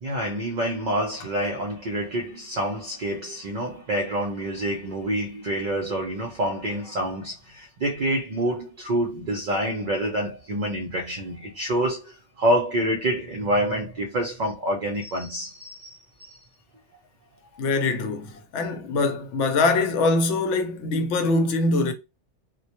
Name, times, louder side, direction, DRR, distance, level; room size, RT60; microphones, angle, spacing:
voice 1, 0.0-16.4, right 1 dB, 60° right, 0.4 m, -27 dB
voice 2, 17.6-21.9, left 3 dB, 80° left, 0.9 m, -23 dB
2.1 x 2.1 x 2.8 m
omnidirectional pair, 1.2 m